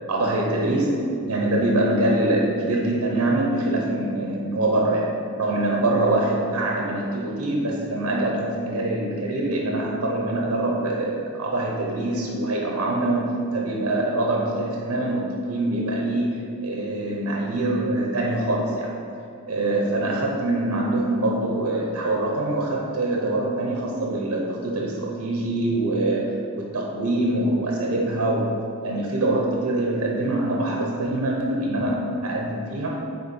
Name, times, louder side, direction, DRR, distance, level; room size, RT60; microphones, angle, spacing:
voice 1, 0.1-1.0 1.3-5.1 5.4-18.9 19.5-28.5 28.8-33.0, right 1 dB, 70° right, -1 dB, 0.8 m, -24 dB
6.6 x 4.1 x 4.2 m, 2.5 s
head